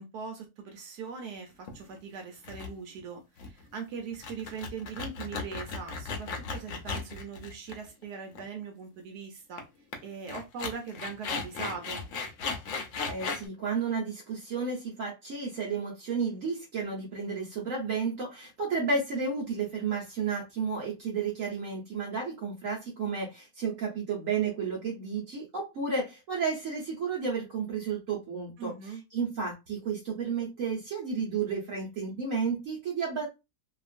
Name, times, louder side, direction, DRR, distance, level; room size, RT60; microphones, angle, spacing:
voice 1, 0.0-9.6 10.0-12.0 28.6-29.0, right 5 dB, 80° right, 3 dB, 1.2 m, -41 dB
sound 1, 1.7-2.0 2.4-2.7 3.0-3.1 3.4-3.6 4.1-8.0 8.3-8.4 9.6-9.7 9.9-10.0 10.3-13.5, left 4 dB, 60° left, 0.9 m, -36 dB
voice 2, 13.1-33.3, right 5 dB, 60° right, -3 dB, 1.2 m, -32 dB
2.9 x 2.4 x 2.4 m, 0.23 s
omnidirectional pair, 1.7 m